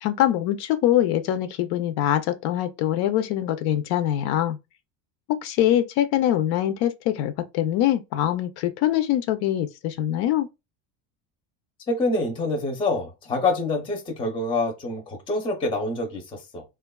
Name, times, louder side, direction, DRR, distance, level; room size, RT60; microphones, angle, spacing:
voice 1, 0.0-4.6 5.3-10.5, left 12 dB, 65° left, 0.5 m, -23 dB
voice 2, 11.9-16.6, left 2 dB, 15° left, 0.5 m, -26 dB
3.3 x 2.3 x 2.2 m
cardioid pair, 140°, 41 cm